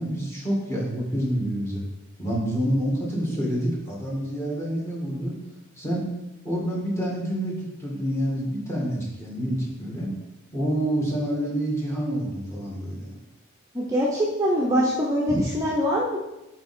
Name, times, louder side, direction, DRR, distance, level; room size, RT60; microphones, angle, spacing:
voice 1, 0.0-1.8 2.2-5.4 5.8-6.1 6.4-10.1 10.5-13.1 15.3-15.4, equal, 15° left, -4 dB, 1.9 m, -27 dB
voice 2, 13.7-16.2, equal, 15° right, -5 dB, 0.8 m, -23 dB
7.6 x 4.4 x 4.3 m, 0.97 s
head